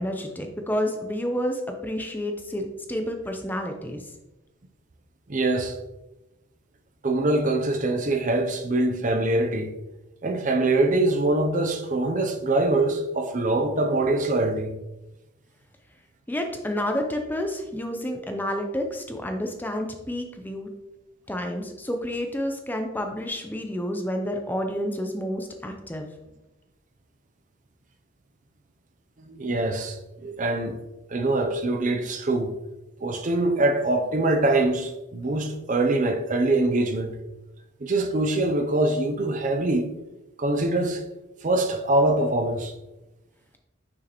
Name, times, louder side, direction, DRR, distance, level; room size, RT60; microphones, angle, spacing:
voice 1, 0.0-4.1 16.3-20.7 21.3-26.1, equal, 10° left, 0.5 m, -30 dB
voice 2, 5.3-5.8 7.0-9.7 10.2-14.7 29.3-30.0 30.2-30.8 31.1-32.5 33.0-37.2 37.8-39.9 40.4-41.0 41.4-42.7, right 2 dB, 35° right, 0.5 m, -23 dB
6.3 x 6.2 x 3.0 m
head